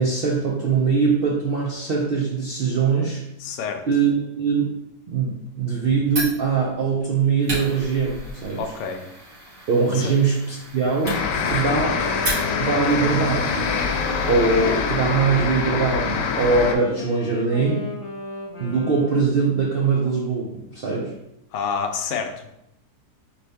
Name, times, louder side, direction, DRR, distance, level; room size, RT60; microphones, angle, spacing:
voice 1, 0.0-3.2 3.9-4.8 5.1-8.6 9.7-12.0 12.6-13.9 14.3-17.9 18.6-21.1, right 5 dB, 75° right, -2 dB, 0.5 m, -22 dB
voice 2, 3.4-3.8 8.6-9.0 9.9-10.1 11.7-12.0 21.5-22.5, left 6 dB, 70° left, 4 dB, 0.7 m, -28 dB
Fire, 6.1-12.9, right 1 dB, 50° right, 2.1 m, -34 dB
sound 1, 11.0-16.7, left 6 dB, 85° left, 1.2 m, -25 dB
Wind instrument woodwind instrument, 11.2-19.6, equal, 20° left, 1.1 m, -35 dB
4.2 x 3.4 x 3.4 m, 0.82 s
omnidirectional pair, 1.8 m